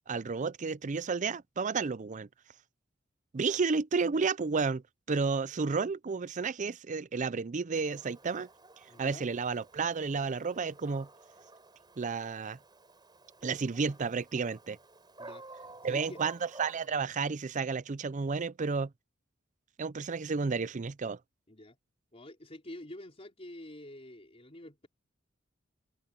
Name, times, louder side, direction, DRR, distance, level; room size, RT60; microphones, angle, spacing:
voice 1, 0.1-2.3 3.3-8.5 9.0-11.1 12.0-12.6 13.4-14.8 15.8-18.9 19.8-21.2, right 4 dB, 40° right, 0.5 m, -32 dB
Dog, 7.7-16.9, right 2 dB, 20° right, 7.1 m, -53 dB
voice 2, 8.9-9.3 15.2-16.2 21.5-21.8 22.1-24.9, left 1 dB, 30° left, 4.3 m, -48 dB
open air
head